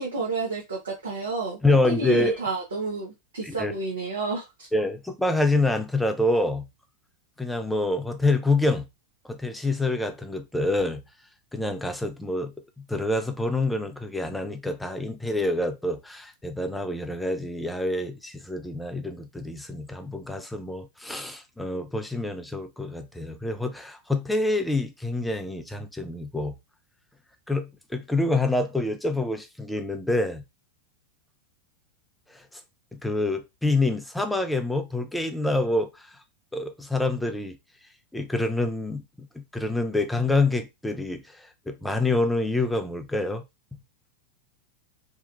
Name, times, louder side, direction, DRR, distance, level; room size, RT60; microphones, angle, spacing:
voice 1, 0.0-1.6 1.9-4.7, right 3 dB, 65° right, 0.7 m, -30 dB
voice 2, 1.6-2.4 3.4-3.7 4.7-6.7 7.4-8.9 9.3-11.0 11.5-12.5 12.9-26.5 27.5-30.4 32.9-35.9 36.5-37.6 38.1-41.4 41.7-43.4, left 2 dB, 5° left, 0.4 m, -26 dB
2.9 x 2.3 x 2.3 m
figure-of-eight pair, 90°, 0 cm